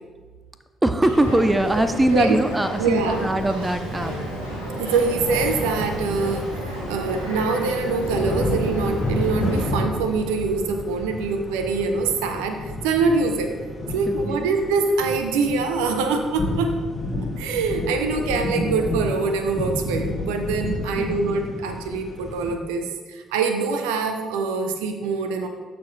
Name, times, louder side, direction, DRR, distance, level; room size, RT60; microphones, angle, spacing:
voice 1, 0.8-4.1 14.1-14.5, right 1 dB, 15° right, 10 dB, 0.5 m, -21 dB
Boat Water vehicle, 1.0-9.6, equal, 90° right, 1.4 m, -32 dB
voice 2, 2.8-3.3 4.8-13.5 13.9-16.7 17.4-25.5, right 4 dB, 70° right, 5 dB, 0.5 m, -24 dB
sound 1, 5.1-22.5, left 1 dB, 35° left, 1.6 m, -30 dB
13.0 x 4.5 x 2.6 m, 1.4 s
figure-of-eight pair, 45°, 0 cm